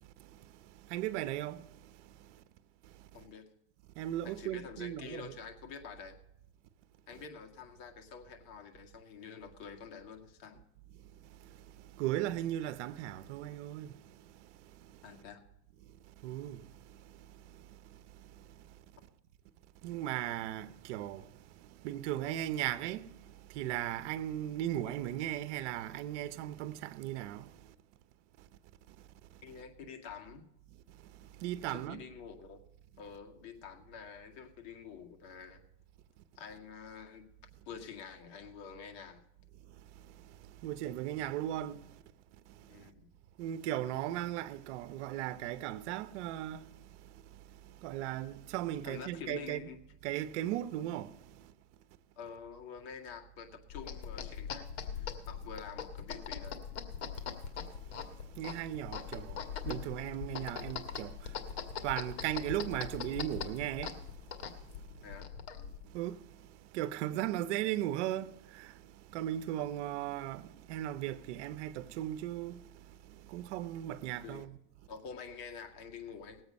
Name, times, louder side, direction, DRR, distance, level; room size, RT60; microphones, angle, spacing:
voice 1, 0.9-1.6 4.0-5.3 12.0-13.9 16.2-16.6 19.8-21.2 21.8-23.1 23.6-27.4 31.4-32.0 40.6-41.8 43.4-46.6 47.8-49.6 50.0-51.1 58.4-61.1 61.8-63.9 65.9-66.2 66.7-68.3 69.1-72.6 73.3-74.6, right 13 dB, 70° right, 0.9 m, -36 dB
voice 2, 3.1-3.5 4.2-6.2 7.1-10.6 15.0-15.4 29.4-30.5 31.7-32.6 33.0-35.6 36.4-37.3 37.7-39.2 42.7-43.1 48.8-49.8 52.2-56.7 65.0-65.3 74.2-74.5 74.9-76.4, left 6 dB, 55° left, 2.0 m, -48 dB
sound 1, 53.7-65.8, left 7 dB, 75° left, 1.9 m, -41 dB
19.5 x 7.9 x 5.3 m
supercardioid pair, 125°, 36 cm